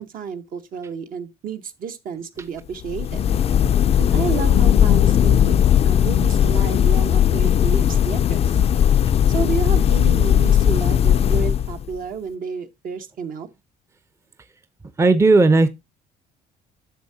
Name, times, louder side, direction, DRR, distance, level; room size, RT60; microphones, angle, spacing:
voice 1, 0.0-3.3 4.0-5.6 5.8-8.6 9.3-13.5, right 6 dB, 55° right, 1.0 m, -31 dB
sound 1, 2.8-12.0, left 9 dB, 35° left, 0.4 m, -17 dB
voice 2, 4.0-4.4 15.0-15.7, right 3 dB, 15° right, 0.6 m, -16 dB
10.0 x 6.6 x 2.7 m
cardioid pair, 110°, 17 cm